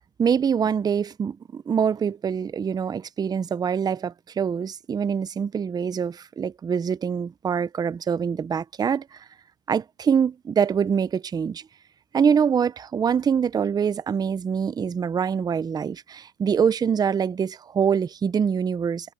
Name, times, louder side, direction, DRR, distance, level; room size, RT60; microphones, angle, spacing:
voice 1, 0.2-9.2 9.7-11.6 12.1-19.1, right 7 dB, 15° right, 0.7 m, -24 dB
hypercardioid pair, 125°, 31 cm